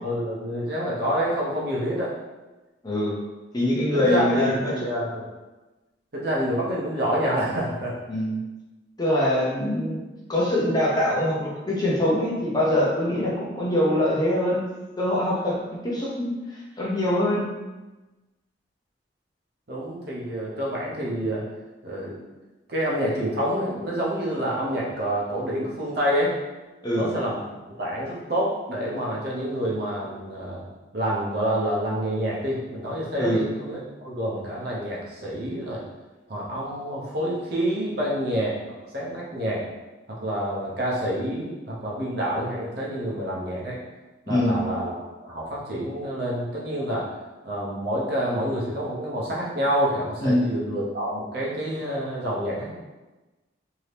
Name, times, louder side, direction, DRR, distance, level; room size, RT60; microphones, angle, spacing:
voice 1, 0.0-2.1 3.9-5.3 6.1-7.9 19.7-21.4 21.8-22.1 22.7-26.3 26.9-27.4 27.8-30.6 30.9-35.8 36.3-38.6 38.9-39.6 40.2-43.8 44.3-47.1 47.4-52.7, equal, 55° right, -5 dB, 0.8 m, -27 dB
voice 2, 2.8-3.2 3.5-4.7 8.1-8.4 9.0-10.0 10.3-14.6 15.0-17.5 26.8-27.1 33.2-33.4 44.3-44.6 50.2-50.5, left 1 dB, 20° left, -5 dB, 0.5 m, -23 dB
2.8 x 2.7 x 3.3 m, 1.1 s
head